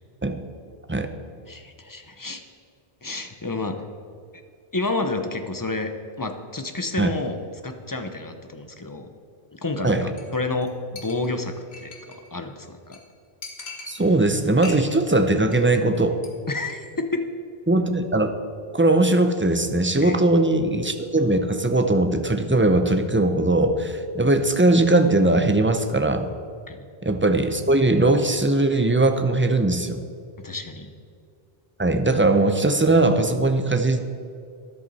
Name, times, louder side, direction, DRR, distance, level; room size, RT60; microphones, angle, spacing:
voice 1, 1.5-2.4 3.0-3.8 4.7-5.9 6.2-9.1 9.5-13.0 16.5-17.2 20.0-20.2 26.7-26.9 30.4-30.9, left 2 dB, 20° left, 6 dB, 0.7 m, -30 dB
Chink clink, 10.2-10.4 10.6-10.7 11.0-12.3 12.6-12.7 12.9-13.0 13.4-14.3 14.6-15.1 15.4-15.7 15.9-16.3 16.6-16.7, left 4 dB, 75° left, 1.7 m, -40 dB
voice 2, 13.9-16.2 17.7-18.3 18.7-26.3 27.0-30.0 31.8-34.0, right 2 dB, 15° right, 7 dB, 0.5 m, -20 dB
13.0 x 10.5 x 4.2 m, 2.4 s
omnidirectional pair, 1.1 m